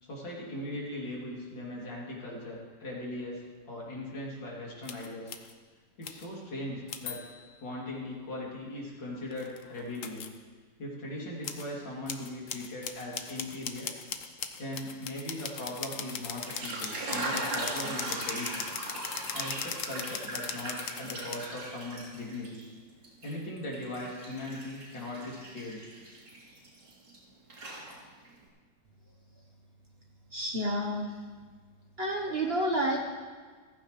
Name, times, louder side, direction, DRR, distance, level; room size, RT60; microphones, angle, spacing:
voice 1, 0.0-5.3 6.0-7.2 7.6-10.3 10.8-13.9 14.6-18.7 19.3-22.6 23.2-25.9, left 1 dB, 80° left, -4 dB, 3.6 m, -39 dB
sound 1, 4.8-5.5 6.0-6.3 6.9-7.5 9.3-10.4 11.4-11.7 12.1-21.5, left 7 dB, 55° left, 1.0 m, -39 dB
sound 2, 16.3-22.7 23.0-27.2 27.5-28.3, right 2 dB, 80° right, 4.0 m, -39 dB
voice 2, 30.3-31.1 32.0-33.0, right 1 dB, 40° right, 1 dB, 1.1 m, -29 dB
15.0 x 15.0 x 3.2 m, 1.5 s
omnidirectional pair, 2.0 m